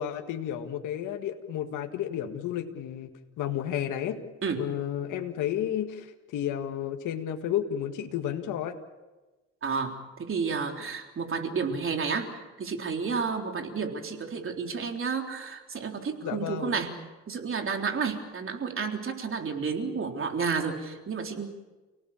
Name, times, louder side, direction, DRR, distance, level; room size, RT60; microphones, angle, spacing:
voice 1, 0.0-4.2 4.5-6.1 6.3-8.7 16.2-16.7, left 10 dB, 90° left, 5 dB, 1.9 m, -32 dB
voice 2, 9.6-9.9 10.2-16.9 17.3-21.5, right 5 dB, 45° right, 3 dB, 3.8 m, -31 dB
30.0 x 18.5 x 7.2 m, 1.2 s
cardioid pair, 90°, 30 cm